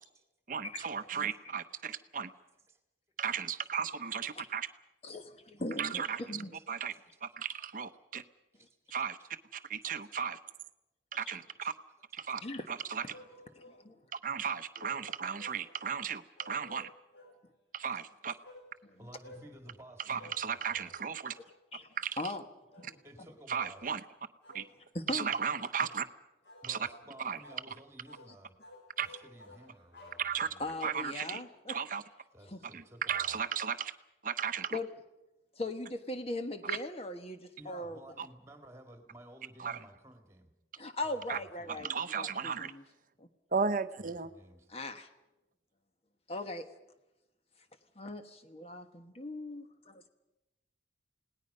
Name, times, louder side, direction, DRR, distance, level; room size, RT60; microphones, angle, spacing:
voice 1, 0.5-2.3 3.2-4.7 5.8-6.2 6.7-6.9 7.2-8.2 8.9-9.2 9.5-10.4 11.1-11.7 12.1-12.4 12.7-13.0 14.1-16.9 17.7-18.4 20.1-21.4 22.0-22.2 23.5-24.0 24.5-24.6 25.1-26.1 26.6-26.8 27.2-27.4 29.0-29.1 30.2-30.5 30.8-31.4 31.7-32.0 32.7-33.9 34.2-34.8 36.6-36.8 38.2-38.3 39.6-39.8 41.3-41.4 41.7-42.7 43.5-44.3, right 6 dB, 45° right, 11 dB, 0.8 m, -35 dB
voice 2, 5.0-6.6 11.3-11.4 12.4-12.7 13.5-14.0 14.8-14.9 18.8-19.0 21.7-22.4 22.8-23.0 24.9-25.3 30.6-31.8 32.4-32.6 34.7-34.9 35.5-38.0 40.8-41.9 42.2-42.8 43.2-43.3 44.7-45.1 46.3-46.7 47.9-50.0, left 2 dB, 30° left, 8 dB, 1.3 m, -40 dB
voice 3, 8.6-8.9 9.8-10.0 11.3-11.4 19.0-21.0 23.0-23.8 26.6-28.5 29.0-30.7 32.3-33.4 37.6-40.5 41.0-41.8 44.0-44.7, right 1 dB, 15° right, 5 dB, 2.1 m, -54 dB
sound 1, 13.1-13.8 14.8-15.9 16.4-17.4 18.4-18.7 19.2-19.5 20.2-20.4 20.7-20.9 21.3-21.5 22.2-22.4 22.7-23.0 23.5-23.8 24.4-24.7 25.2-25.5 25.8-26.0 26.4-27.1 27.4-27.7 28.0-28.3 28.6-30.7, left 1 dB, 65° left, 5.0 m, -55 dB
29.0 x 18.5 x 5.5 m, 0.98 s
head